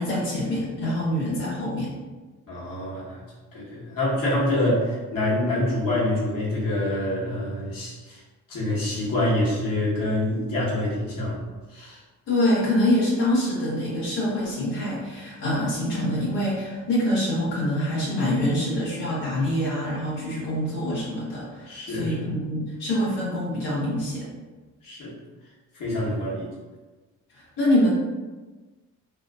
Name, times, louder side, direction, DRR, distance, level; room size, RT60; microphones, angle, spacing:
voice 1, 0.0-1.9 12.3-24.3 27.3-27.9, left 1 dB, 75° left, -8 dB, 1.1 m, -25 dB
voice 2, 2.5-3.2 3.5-8.2 8.5-11.4 11.7-12.0 21.7-22.2 24.8-25.1 25.7-26.5, left 1 dB, 55° left, -7 dB, 1.1 m, -26 dB
2.7 x 2.4 x 2.2 m, 1.2 s
hypercardioid pair, 40°, 40 cm